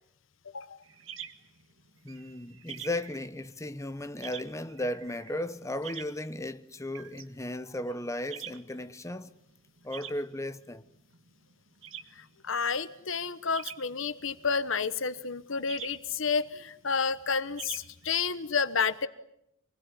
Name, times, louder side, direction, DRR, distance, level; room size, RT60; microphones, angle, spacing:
sound 1, 0.8-18.5, right 9 dB, 65° right, 1.8 m, -47 dB
voice 1, 2.0-9.3 9.8-10.9, left 1 dB, 15° left, 1.0 m, -35 dB
voice 2, 12.2-19.1, left 5 dB, 65° left, 1.1 m, -30 dB
27.0 x 20.5 x 10.0 m
head